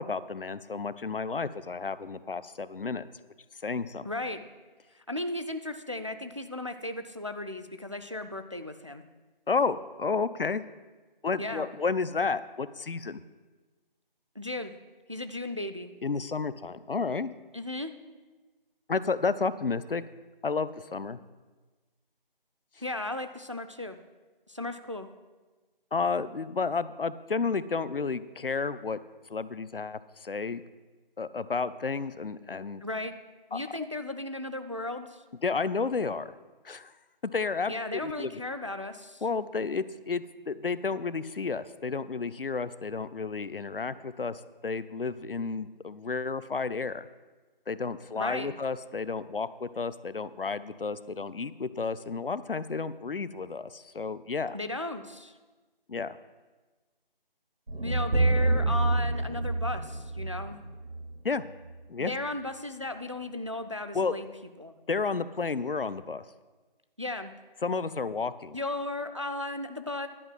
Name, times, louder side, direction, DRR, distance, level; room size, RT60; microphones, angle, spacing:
voice 1, 0.0-3.1 3.6-4.1 9.5-10.6 11.2-13.2 16.0-17.3 18.9-20.0 20.4-21.2 25.9-29.0 29.3-30.6 31.2-32.8 33.5-33.6 35.4-36.3 36.6-36.9 37.2-38.3 39.2-47.1 47.7-54.6 55.9-56.2 61.2-61.4 61.9-62.1 63.9-64.1 64.9-66.2 67.6-68.6, left 4 dB, 70° left, 16 dB, 0.6 m, -31 dB
voice 2, 4.0-4.4 4.9-9.0 11.4-11.7 14.4-14.7 15.1-16.0 17.5-17.9 22.8-24.0 24.5-25.1 32.8-33.1 33.5-35.2 37.7-39.2 48.1-48.6 54.5-55.3 57.8-60.6 62.0-64.3 64.6-64.8 67.0-67.3 68.5-70.1, left 2 dB, 35° right, 9 dB, 0.4 m, -35 dB
sound 1, 57.7-61.8, right 2 dB, 90° right, 1.3 m, -28 dB
11.0 x 5.5 x 7.7 m, 1.3 s
figure-of-eight pair, 160°, 29 cm